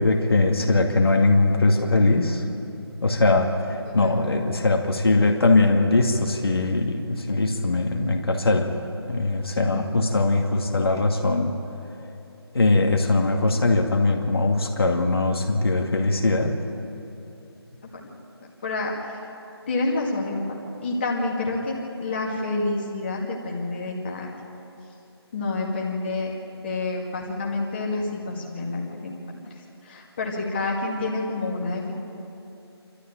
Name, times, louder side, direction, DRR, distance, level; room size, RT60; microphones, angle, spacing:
voice 1, 0.0-2.4 3.0-8.7 9.1-11.5 12.5-16.5, left 2 dB, 60° left, 2 dB, 2.3 m, -21 dB
voice 2, 3.8-4.2 9.6-9.9 18.6-19.2 19.7-24.3 25.3-26.3 26.6-29.4 29.8-31.9, left 2 dB, 25° left, -2 dB, 2.2 m, -28 dB
28.0 x 13.0 x 8.9 m, 2.9 s
figure-of-eight pair, 170°, 14 cm